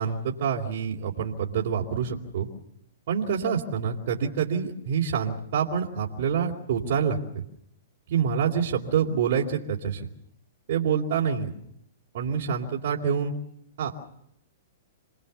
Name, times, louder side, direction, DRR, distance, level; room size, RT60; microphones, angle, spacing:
voice 1, 0.0-2.5 3.1-7.4 8.1-10.0 10.7-11.5 12.1-13.3 13.8-13.9, right 7 dB, 60° right, -4 dB, 3.3 m, -26 dB
28.5 x 20.0 x 7.1 m, 0.77 s
hypercardioid pair, 140°, 0 cm